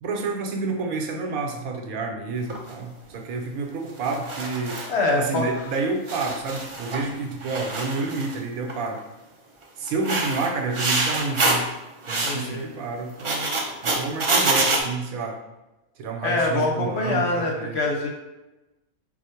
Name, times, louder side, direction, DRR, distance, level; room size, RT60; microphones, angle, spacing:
voice 1, 0.0-4.8 5.2-9.0 9.8-11.7 12.1-13.5 13.8-15.4 16.0-17.8, right 3 dB, 80° right, 3 dB, 1.1 m, -29 dB
sound 1, 2.5-2.7 4.0-4.9 5.7-5.8 6.1-7.1 7.4-8.4 8.7-9.0 9.9-11.7 12.0-12.4 13.1-14.8, right 2 dB, 50° right, 0.3 m, -25 dB
voice 2, 4.9-5.6 12.2-12.7 16.2-18.1, left 2 dB, 55° left, 1 dB, 0.9 m, -24 dB
4.4 x 2.4 x 4.3 m, 1.0 s
omnidirectional pair, 1.5 m